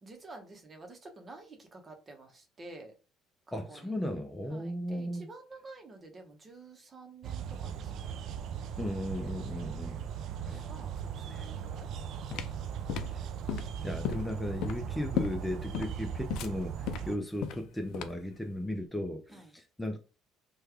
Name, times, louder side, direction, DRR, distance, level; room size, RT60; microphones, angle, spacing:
voice 1, 0.0-2.9 3.5-4.0 4.5-8.4 9.5-11.9 12.3-12.5 17.0-17.2 19.3-19.6, right 3 dB, 30° right, 0.8 m, -51 dB
voice 2, 3.5-5.3 8.8-10.0 10.5-10.7 11.3-11.5 12.9-13.2 13.8-20.0, left 1 dB, 10° left, 0.5 m, -36 dB
sound 1, 7.2-17.2, right 8 dB, 65° right, 0.3 m, -39 dB
sound 2, 11.9-18.4, left 8 dB, 70° left, 0.4 m, -36 dB
3.2 x 2.3 x 3.4 m
supercardioid pair, 90°, 0 cm